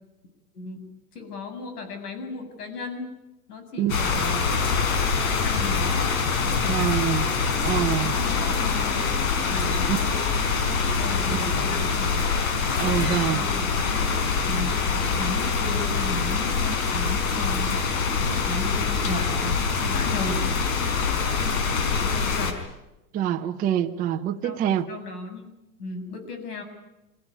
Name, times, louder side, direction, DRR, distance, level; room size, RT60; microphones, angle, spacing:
voice 1, 1.1-3.1 3.5-6.1 6.4-7.0 7.5-7.6 8.0-9.1 9.5-10.3 10.9-12.2 12.7-13.7 14.4-17.9 18.2-20.5 22.0-22.6 24.4-24.6 24.9-25.5 25.8-26.6, left 2 dB, 85° left, 8 dB, 7.3 m, -35 dB
sound 1, 3.9-22.5, left 5 dB, 65° left, 4.8 m, -24 dB
voice 2, 6.7-7.3 7.6-8.2 9.9-10.0 11.3-11.5 12.8-13.4 23.1-24.9, right 10 dB, 20° right, 3 dB, 0.9 m, -25 dB
27.0 x 16.5 x 9.6 m, 0.97 s
supercardioid pair, 155°, 45 cm